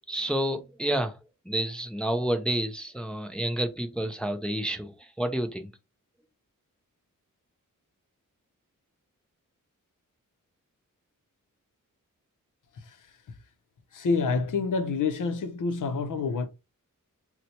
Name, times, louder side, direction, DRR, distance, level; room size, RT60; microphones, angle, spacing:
voice 1, 0.1-1.2 1.5-5.7, right 1 dB, 5° left, 0.4 m, -29 dB
voice 2, 12.7-13.2 13.9-16.5, left 4 dB, 70° left, 0.6 m, -28 dB
4.2 x 2.1 x 2.7 m
wide cardioid pair, 180°, 33 cm